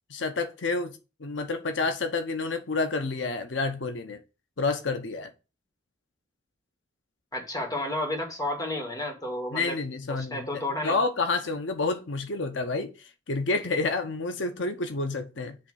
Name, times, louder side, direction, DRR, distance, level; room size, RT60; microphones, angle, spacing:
voice 1, 0.1-4.2 4.6-5.3 9.5-12.9 13.3-15.6, left 3 dB, 85° left, 0.8 m, -29 dB
voice 2, 7.3-9.8 10.1-11.0, left 1 dB, 20° left, 2.0 m, -31 dB
7.6 x 3.2 x 6.3 m
head